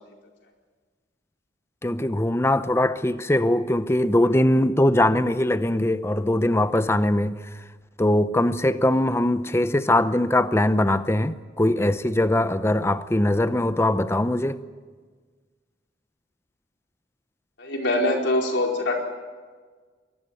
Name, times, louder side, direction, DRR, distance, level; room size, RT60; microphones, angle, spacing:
voice 1, 1.8-7.4 8.0-14.6, left 1 dB, 15° left, 0.7 m, -21 dB
voice 2, 17.6-19.0, left 1 dB, 65° left, 4.2 m, -23 dB
24.0 x 19.5 x 9.2 m
head